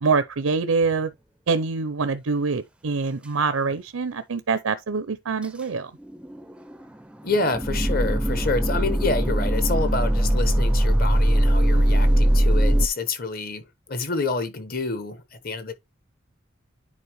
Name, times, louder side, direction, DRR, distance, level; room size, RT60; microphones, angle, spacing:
voice 1, 0.0-1.1 1.5-5.9 11.7-12.2, right 4 dB, 90° right, 0.6 m, -25 dB
sound 1, 3.7-3.8 5.4-5.5 6.0-12.9, right 1 dB, 5° right, 0.4 m, -21 dB
voice 2, 7.2-15.7, left 3 dB, 45° left, 1.2 m, -28 dB
9.7 x 4.4 x 3.1 m
head